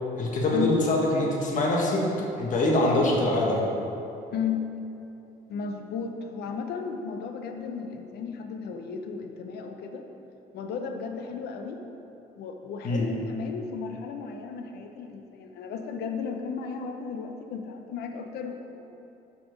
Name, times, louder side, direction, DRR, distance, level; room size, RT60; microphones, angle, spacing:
voice 1, 0.1-2.0 2.4-3.6 12.8-13.1, left 2 dB, 50° left, -2 dB, 1.6 m, -24 dB
voice 2, 4.3-4.7 5.5-10.0 10.5-11.8 12.4-19.0, left 6 dB, 70° left, 5 dB, 0.8 m, -34 dB
6.2 x 5.9 x 5.2 m, 2.9 s
cardioid pair, 110°, 17 cm